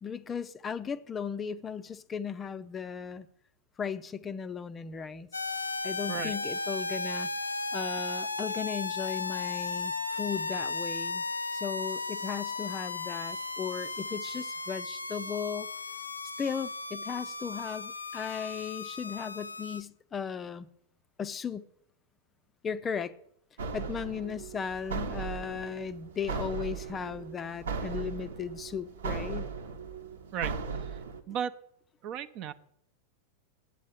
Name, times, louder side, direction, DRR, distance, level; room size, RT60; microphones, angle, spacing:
voice 1, 0.0-3.3 3.8-5.3 5.8-7.3 7.7-11.2 11.5-15.7 16.4-20.7 21.2-21.7 22.6-23.1 23.7-29.5, left 7 dB, 20° left, 0.5 m, -36 dB
sound 1, 5.3-19.8, left 3 dB, 80° left, 0.5 m, -35 dB
sound 2, 23.6-31.2, right 5 dB, 65° right, 1.1 m, -37 dB
voice 2, 30.3-31.0 31.3-31.6 32.0-32.5, right 8 dB, 40° right, 0.7 m, -35 dB
8.4 x 7.4 x 8.8 m
figure-of-eight pair, 90°, 0 cm